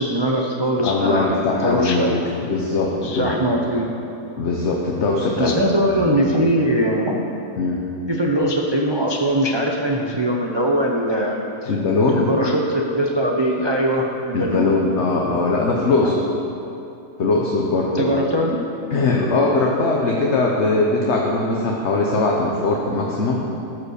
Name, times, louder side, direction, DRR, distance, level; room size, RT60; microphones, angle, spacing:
voice 1, 0.0-2.3 3.0-3.9 5.4-7.2 8.1-11.4 11.6-11.7 12.1-14.7 16.0-16.1 17.9-18.6, right 1 dB, 35° right, -1 dB, 0.4 m, -21 dB
voice 2, 0.8-2.1 2.4-3.5 4.4-5.8 6.0-6.4 7.6-7.8 11.6-12.3 14.3-16.2 17.2-18.1 18.9-23.4, left 3 dB, 50° left, -1 dB, 1.1 m, -20 dB
13.5 x 5.3 x 6.4 m, 2.9 s
omnidirectional pair, 1.6 m